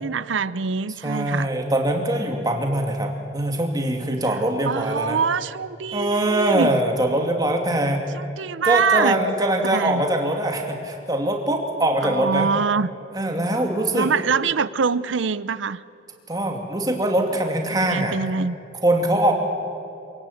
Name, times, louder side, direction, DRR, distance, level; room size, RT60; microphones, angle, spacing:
voice 1, 0.0-1.5 4.6-6.7 8.1-9.2 9.6-10.1 12.0-12.9 13.9-15.8 17.7-18.5, right 5 dB, 85° right, 17 dB, 0.6 m, -24 dB
voice 2, 1.0-5.2 5.9-8.1 8.6-12.5 13.1-14.1 16.3-18.1 18.8-19.3, right 1 dB, 20° right, 2 dB, 2.6 m, -22 dB
26.5 x 17.5 x 8.5 m, 2.6 s
head